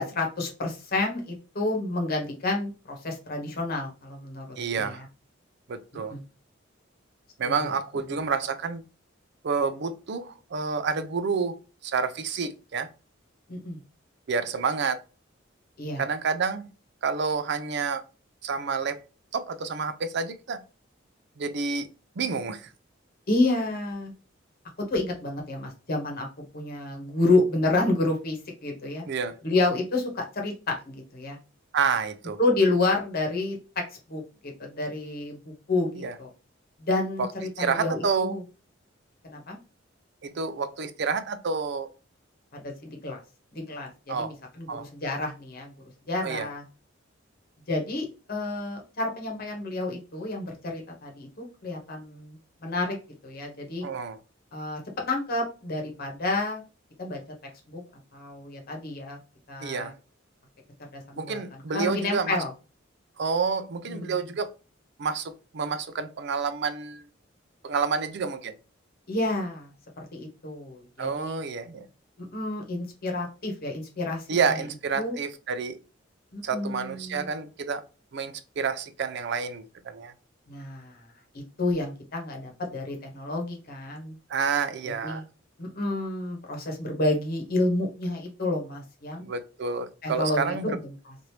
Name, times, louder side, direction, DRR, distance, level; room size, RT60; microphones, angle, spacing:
voice 1, 0.0-4.4 4.7-5.0 5.9-6.2 7.4-7.5 13.5-13.8 15.8-16.0 23.3-24.1 24.9-26.3 26.5-29.0 29.4-31.4 32.4-33.6 34.1-36.3 36.8-38.4 39.2-39.6 42.5-43.2 43.5-45.7 46.1-46.6 47.7-53.0 53.2-53.9 54.5-56.6 57.0-57.2 57.7-57.8 58.1-59.2 59.5-59.9 60.9-61.4 61.7-62.5 63.9-64.1 69.1-69.7 70.1-71.4 72.2-74.2 74.5-74.6 74.9-75.2 76.3-77.3 80.5-81.0 81.3-84.2 85.0-85.2 85.6-89.3 90.0-90.9, left 2 dB, 50° left, 1.0 m, -29 dB
voice 2, 4.6-5.0 5.7-6.2 7.4-8.8 9.4-11.6 11.8-12.9 14.3-15.0 16.0-16.7 17.0-18.0 18.4-19.0 19.3-20.6 21.4-21.9 22.2-22.7 29.1-29.4 31.7-32.4 35.9-36.1 37.2-37.3 37.6-38.3 40.2-41.9 44.1-44.3 44.7-44.9 46.2-46.5 53.8-54.2 59.6-59.9 61.2-62.4 63.2-64.5 65.0-67.1 67.6-68.5 71.0-71.9 74.3-75.8 76.4-77.8 78.1-80.1 84.3-85.2 89.2-90.8, right 5 dB, 60° right, 0.4 m, -29 dB
2.9 x 2.6 x 3.1 m
head